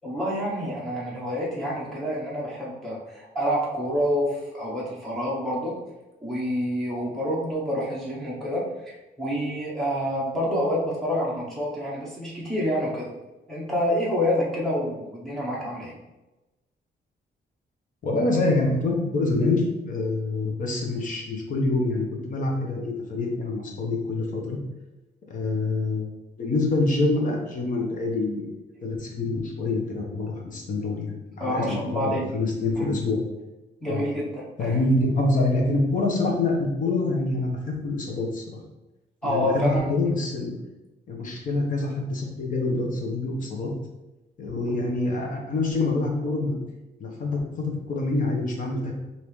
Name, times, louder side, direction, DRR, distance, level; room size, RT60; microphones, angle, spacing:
voice 1, 0.0-5.8 6.2-13.1 13.5-15.9 31.4-32.2 32.8-32.9 33.8-34.8 39.2-39.9, equal, ahead, -6 dB, 0.8 m, -27 dB
voice 2, 18.0-24.6 25.3-28.5 28.8-33.2 33.9-34.0 34.6-38.6 39.2-40.6 41.1-43.7 44.4-46.6 47.0-48.9, left 2 dB, 45° left, 0 dB, 1.0 m, -26 dB
5.3 x 2.8 x 3.1 m, 1.0 s
wide cardioid pair, 165°, 18 cm